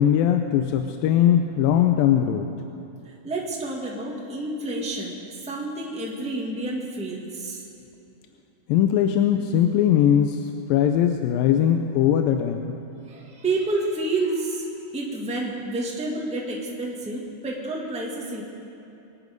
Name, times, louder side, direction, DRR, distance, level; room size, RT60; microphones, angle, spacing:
voice 1, 0.0-2.5 8.7-12.7, left 10 dB, 90° left, 5 dB, 2.4 m, -20 dB
voice 2, 3.0-5.2 5.4-7.6 13.1-14.7 14.9-18.4, right 2 dB, 5° right, -3 dB, 0.9 m, -29 dB
24.0 x 10.0 x 5.2 m, 2.9 s
omnidirectional pair, 4.0 m